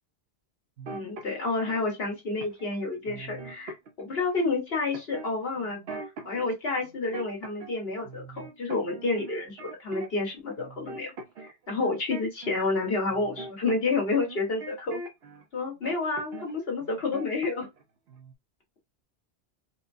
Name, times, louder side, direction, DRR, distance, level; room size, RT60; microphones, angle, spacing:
sound 1, 0.8-1.8 2.4-2.7 3.0-4.3 4.9-6.5 6.8-7.8 8.0-10.3 10.6-15.4 15.8-16.5 16.8-17.8 18.1-18.3, right 2 dB, 70° right, 1.0 m, -42 dB
voice 1, 0.9-5.8 6.2-11.1 11.4-15.0 15.5-17.7, left 3 dB, 60° left, 1.7 m, -29 dB
4.4 x 2.2 x 2.6 m
omnidirectional pair, 1.1 m